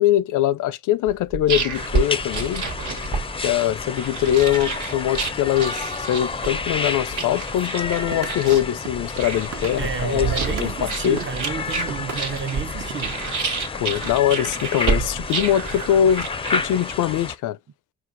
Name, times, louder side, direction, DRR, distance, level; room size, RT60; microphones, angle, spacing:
voice 1, 0.0-2.6 3.4-11.2 13.8-17.6, left 11 dB, 90° left, 0.5 m, -22 dB
sound 1, 1.1-17.2, right 4 dB, 80° right, 1.4 m, -29 dB
sound 2, 1.7-17.4, left 4 dB, 20° left, 0.4 m, -31 dB
sound 3, 8.0-10.8 11.2-13.1, right 7 dB, 60° right, 1.0 m, -37 dB
voice 2, 9.7-13.2, right 6 dB, 40° right, 0.6 m, -30 dB
5.9 x 2.5 x 2.5 m
cardioid pair, 100°, 30 cm